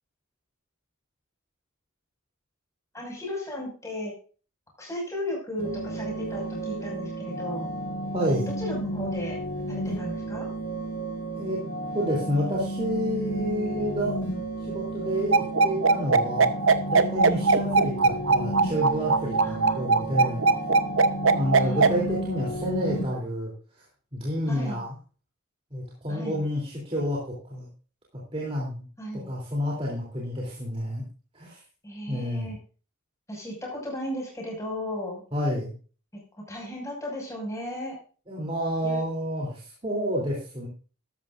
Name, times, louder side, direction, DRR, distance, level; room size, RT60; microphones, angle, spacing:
voice 1, 2.9-4.1 4.8-7.7 8.6-10.5 19.4-19.8 21.5-22.1 24.5-24.8 26.1-26.4 29.0-29.3 31.8-32.6 33.3-35.2 36.1-38.0 38.8-39.0, left 1 dB, 15° left, -2 dB, 6.0 m, -35 dB
sound 1, 5.6-23.0, right 1 dB, 70° left, 5.5 m, -32 dB
voice 2, 8.1-8.5 11.3-11.6 11.9-14.2 14.6-16.5 16.9-20.4 21.2-23.5 24.1-24.9 25.7-27.7 28.3-28.8 29.3-31.0 31.3-31.6 32.1-32.5 35.3-35.7 38.3-40.7, equal, 25° right, -4 dB, 3.3 m, -29 dB
sound 2, 15.3-21.9, right 4 dB, 65° right, 0.8 m, -20 dB
13.0 x 13.0 x 2.6 m, 0.38 s
head